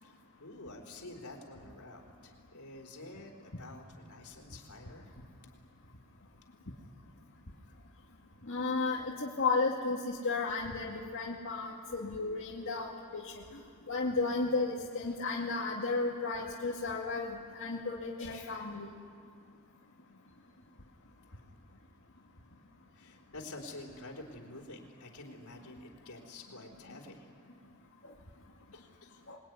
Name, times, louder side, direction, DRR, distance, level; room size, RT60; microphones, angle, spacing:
voice 1, 0.0-5.1 17.7-17.8 22.9-27.3 28.7-29.2, left 2 dB, 80° left, 1 dB, 4.2 m, -49 dB
voice 2, 8.4-13.6 13.9-18.9 29.3-29.4, left 3 dB, 60° left, -4 dB, 2.2 m, -34 dB
26.0 x 21.0 x 9.7 m, 2.2 s
head